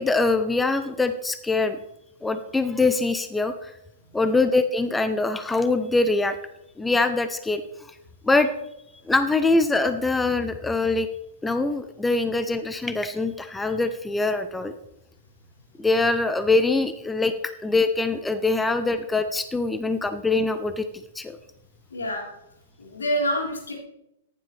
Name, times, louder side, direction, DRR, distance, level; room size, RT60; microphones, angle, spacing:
voice 1, 0.0-1.8 2.2-3.7 4.1-6.4 6.8-7.6 8.2-8.5 9.1-11.1 11.4-14.7 15.8-21.4, left 3 dB, 10° left, 10 dB, 0.8 m, -23 dB
voice 2, 21.9-22.3 22.8-23.7, equal, 80° left, -2 dB, 4.3 m, -27 dB
14.5 x 10.5 x 3.4 m, 0.84 s
hypercardioid pair, 110°, 0 cm